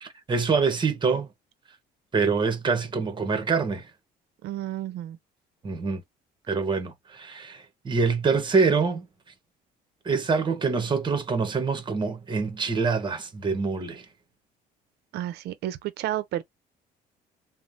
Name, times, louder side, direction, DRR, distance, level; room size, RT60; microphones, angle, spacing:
voice 1, 0.0-1.3 2.1-3.9 5.6-6.0 6.5-9.1 10.0-14.1, right 4 dB, 25° right, 0.9 m, -25 dB
voice 2, 4.4-5.2 15.1-16.4, right 13 dB, 75° right, 0.5 m, -31 dB
3.2 x 2.0 x 2.5 m
cardioid pair, 110°, 17 cm